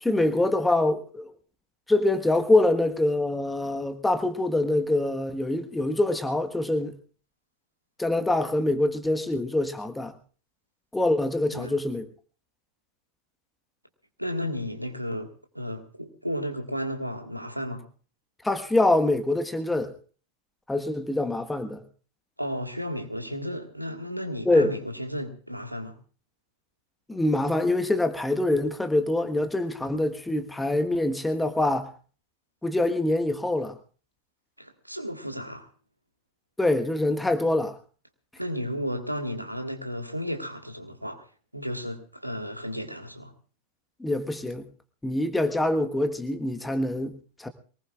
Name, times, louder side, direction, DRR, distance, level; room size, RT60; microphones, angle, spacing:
voice 1, 0.0-1.3 1.9-7.0 8.0-10.1 10.9-12.0 18.4-19.9 20.7-21.8 24.5-24.7 27.1-31.9 32.6-33.7 36.6-37.7 44.0-44.7 45.0-47.5, left 2 dB, 5° left, 1.4 m, -25 dB
voice 2, 14.2-17.9 22.4-26.0 34.6-35.7 38.4-41.2 41.5-43.3, equal, 90° right, 1.7 m, -33 dB
24.0 x 19.0 x 2.4 m
figure-of-eight pair, 90°, 0 cm